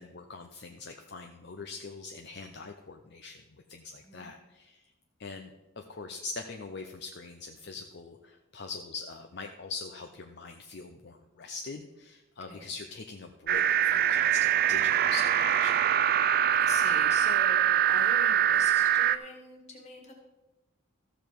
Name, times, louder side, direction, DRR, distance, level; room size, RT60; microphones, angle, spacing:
voice 1, 0.0-3.4 3.7-4.9 5.2-15.8, left 4 dB, 50° left, 5 dB, 0.6 m, -42 dB
sound 1, 13.5-19.2, right 10 dB, 45° right, 0.3 m, -24 dB
voice 2, 16.5-20.1, left 3 dB, 30° left, 1 dB, 1.9 m, -43 dB
14.0 x 7.0 x 4.6 m, 1.1 s
head